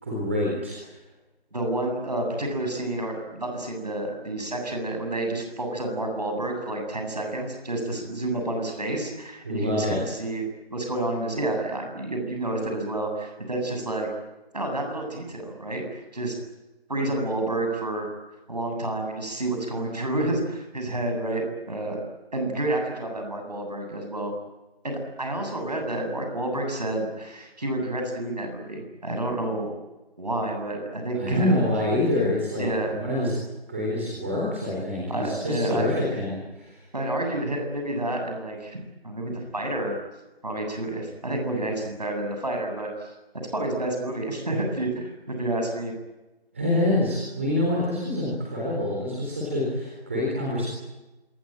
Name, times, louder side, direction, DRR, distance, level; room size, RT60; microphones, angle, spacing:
voice 1, 0.0-0.9 9.4-10.0 31.2-33.3 33.7-36.8 46.5-50.7, left 1 dB, 10° right, -4 dB, 3.9 m, -26 dB
voice 2, 1.5-10.4 10.7-14.1 14.5-16.4 16.9-18.1 18.5-22.0 22.3-24.3 24.8-29.7 30.2-31.5 32.6-33.0 35.1-35.9 36.9-38.8 39.0-40.0 40.4-43.1 43.5-45.9, right 1 dB, 40° right, 3 dB, 7.9 m, -29 dB
26.5 x 23.0 x 9.1 m, 1.1 s
figure-of-eight pair, 175°, 31 cm